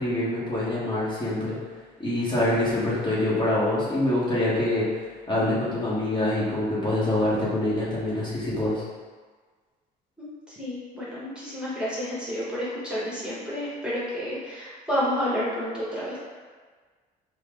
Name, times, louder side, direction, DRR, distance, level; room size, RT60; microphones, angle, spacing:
voice 1, 0.0-1.6 2.0-4.8 5.3-8.8, left 1 dB, 25° left, -8 dB, 1.1 m, -25 dB
voice 2, 10.2-16.2, equal, 5° right, -9 dB, 1.1 m, -30 dB
4.3 x 2.1 x 3.6 m, 1.5 s
cardioid pair, 110°, 17 cm